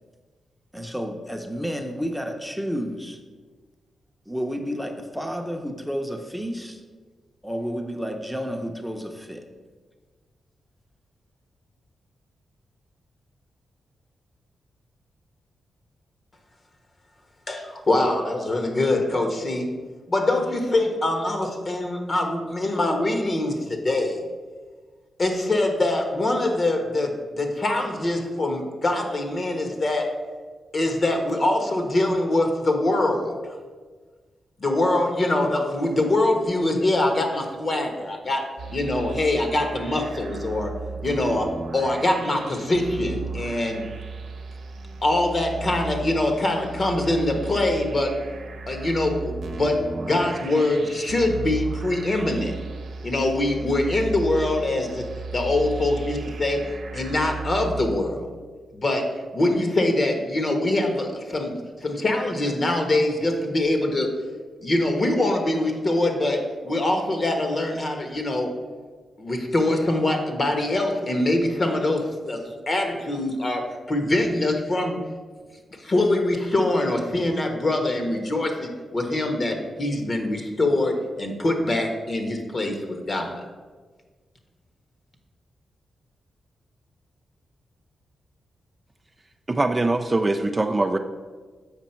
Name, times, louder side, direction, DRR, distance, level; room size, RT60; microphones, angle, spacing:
voice 1, 0.7-3.2 4.3-6.8 7.4-9.4, equal, ahead, 4 dB, 0.8 m, -31 dB
voice 2, 17.5-19.7 20.1-24.2 25.2-30.1 30.7-33.6 34.6-40.7 41.0-43.8 45.0-48.1 48.7-52.5 53.0-55.1 55.3-56.7 56.9-58.3 58.7-64.1 64.6-68.5 69.2-75.0 75.8-83.4, left 2 dB, 45° left, 4 dB, 1.2 m, -24 dB
sound 1, 38.6-58.0, right 4 dB, 75° right, 0.8 m, -35 dB
voice 3, 89.5-91.0, right 2 dB, 25° right, 6 dB, 0.4 m, -22 dB
7.2 x 5.0 x 4.4 m, 1.4 s
cardioid pair, 70°, 0 cm